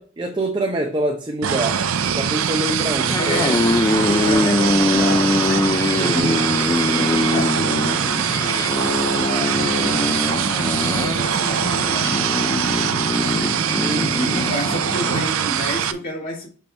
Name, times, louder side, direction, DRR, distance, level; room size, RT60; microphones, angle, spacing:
voice 1, 0.0-3.5 5.9-6.5 13.6-14.3, right 1 dB, 20° right, 0.6 m, -26 dB
sound 1, 1.4-15.9, right 8 dB, 90° right, 0.6 m, -22 dB
sound 2, 3.1-15.3, left 2 dB, 15° left, 0.4 m, -23 dB
voice 2, 3.2-8.7 9.2-10.4 10.7-12.4 14.2-16.5, left 1 dB, 45° left, 2.6 m, -30 dB
5.8 x 5.4 x 4.2 m
head